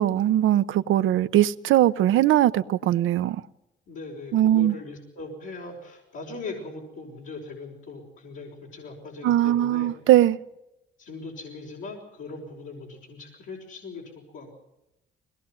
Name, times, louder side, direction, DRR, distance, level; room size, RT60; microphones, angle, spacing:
voice 1, 0.0-3.4 4.3-4.8 9.2-10.4, right 13 dB, 80° right, 0.8 m, -20 dB
voice 2, 3.9-9.9 11.0-14.6, left 3 dB, 80° left, 5.3 m, -40 dB
22.0 x 19.0 x 7.7 m
cardioid pair, 90°, 20 cm